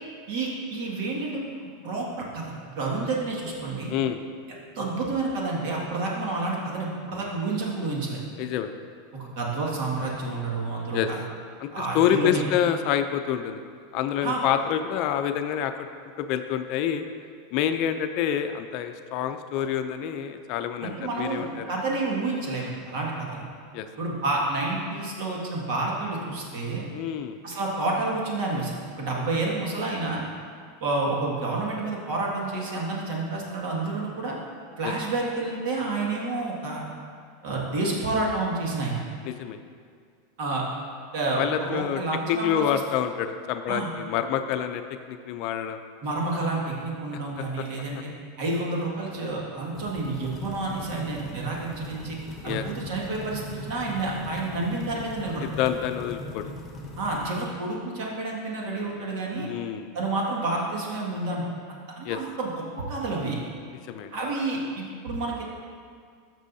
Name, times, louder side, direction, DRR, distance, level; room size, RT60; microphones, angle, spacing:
voice 1, 0.3-1.4 1.8-3.9 4.8-8.2 9.1-11.2 11.7-12.4 14.2-14.4 20.8-23.5 24.0-26.8 27.4-30.3 30.8-34.4 34.8-36.8 37.4-39.0 40.4-40.6 41.1-42.8 43.7-43.9 46.0-48.1 48.4-52.2 52.4-55.5 57.0-59.5 59.9-61.4 61.9-62.5 62.8-63.4 64.1-65.4, right 2 dB, 60° right, -3 dB, 2.0 m, -29 dB
voice 2, 8.4-8.7 10.9-11.1 11.6-11.7 11.9-13.6 13.9-15.7 16.2-17.1 17.5-21.6 23.7-23.9 26.9-27.4 34.8-34.9 39.2-39.6 41.4-42.0 42.3-44.8 45.1-45.8 47.4-47.6 52.4-52.7 55.4-56.5 59.4-59.9 62.0-62.2 63.9-64.1, left 9 dB, 50° left, 8 dB, 0.5 m, -27 dB
sound 1, 49.7-57.3, left 1 dB, 20° left, 1.3 m, -39 dB
13.0 x 6.1 x 2.8 m, 2.1 s
supercardioid pair, 135°, 0 cm